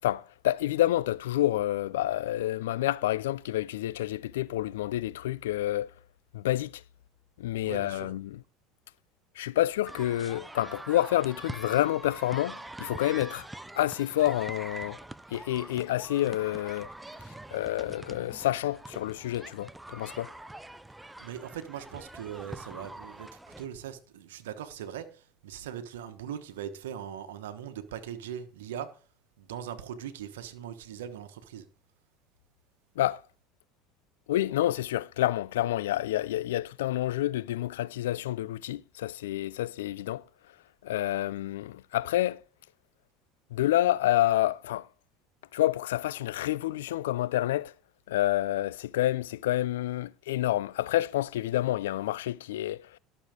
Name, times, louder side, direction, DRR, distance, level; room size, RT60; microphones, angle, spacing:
voice 1, 0.0-5.9 6.3-6.8 7.4-8.4 9.4-13.5 13.8-15.0 15.3-16.9 17.5-20.3 33.0-33.2 34.3-40.2 40.8-42.4 43.5-44.9 45.5-47.7 48.1-53.0, left 14 dB, 80° left, 0.4 m, -28 dB
voice 2, 7.6-8.1 21.2-23.3 23.6-29.0 29.4-31.6, right 9 dB, 80° right, 1.3 m, -40 dB
sound 1, 9.8-23.7, right 1 dB, 10° right, 0.6 m, -44 dB
12.0 x 6.7 x 5.1 m
hypercardioid pair, 80°, 0 cm